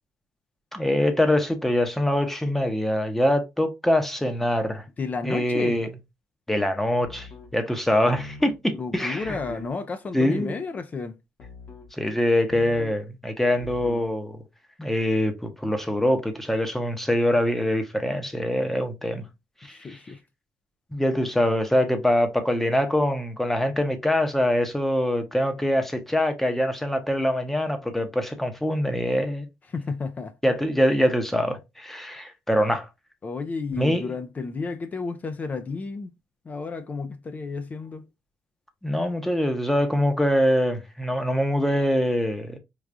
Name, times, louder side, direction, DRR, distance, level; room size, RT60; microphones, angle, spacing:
voice 1, 0.7-4.8 5.2-5.9 6.5-9.4 10.1-10.6 11.9-14.4 14.8-19.2 19.6-20.0 20.9-29.5 30.4-32.9 33.7-34.1 38.8-42.6, left 1 dB, 5° left, 0.7 m, -24 dB
voice 2, 5.0-5.8 8.8-11.2 19.7-20.2 29.7-30.3 33.2-36.1 36.5-38.0, left 4 dB, 30° left, 0.4 m, -32 dB
sound 1, 7.0-7.5 8.1-8.6 9.2-9.7 11.4-11.9 12.5-13.0 13.6-14.1, left 3 dB, 50° left, 1.4 m, -41 dB
4.6 x 2.3 x 2.5 m
cardioid pair, 115°, 5 cm